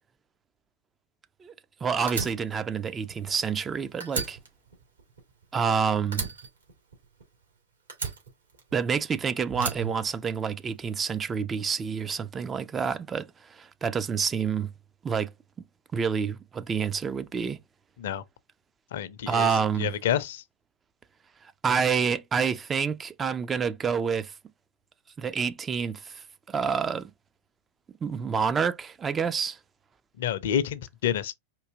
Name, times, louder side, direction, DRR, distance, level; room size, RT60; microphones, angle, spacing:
voice 1, 1.8-4.4 5.5-6.3 8.7-14.7 15.0-15.3 15.9-17.6 19.3-19.9 21.6-24.3 25.2-26.2 26.5-27.1 28.0-29.6, right 6 dB, 20° right, 0.4 m, -28 dB
Fire, 2.1-3.7 4.0-5.7 6.1-7.4 7.9-9.0 9.5-10.7, right 4 dB, 75° right, 2.2 m, -36 dB
sound 1, 4.8-5.0 9.5-9.9, right 8 dB, 60° right, 1.7 m, -37 dB
voice 2, 18.9-19.5 19.8-20.4 30.2-31.3, left 10 dB, 55° left, 0.6 m, -28 dB
4.6 x 2.7 x 3.7 m
figure-of-eight pair, 90°, 0 cm